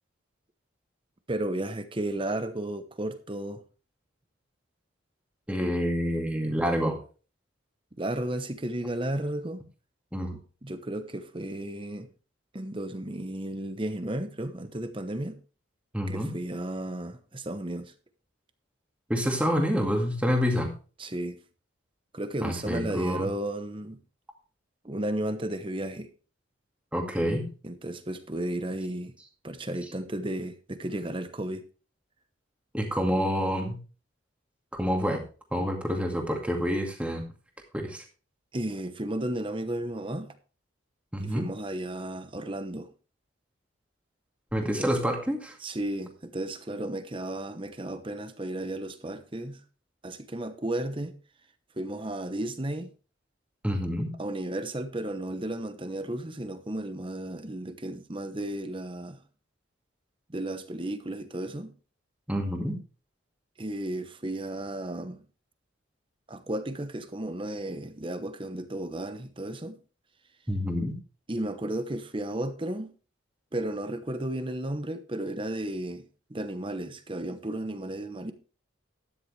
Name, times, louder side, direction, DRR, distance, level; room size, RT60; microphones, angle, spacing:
voice 1, 1.3-3.6 8.0-9.6 10.6-12.1 12.5-15.4 16.1-17.9 21.0-21.4 22.1-24.0 24.8-26.1 27.6-29.1 29.4-31.6 38.5-40.3 41.2-42.9 44.6-44.9 45.6-49.6 50.0-51.1 51.8-52.9 54.2-59.2 60.3-61.7 63.6-65.2 66.3-69.8 71.3-72.9 73.5-78.3, right 1 dB, 25° right, 0.9 m, -33 dB
voice 2, 5.5-7.0 10.1-10.3 15.9-16.3 19.1-20.7 22.4-23.3 26.9-27.5 32.7-33.8 34.7-35.2 35.5-37.3 37.7-38.0 41.1-41.5 44.5-45.6 53.6-54.1 62.3-62.8 70.5-71.0, equal, 5° right, 2.1 m, -27 dB
12.5 x 10.0 x 3.3 m
head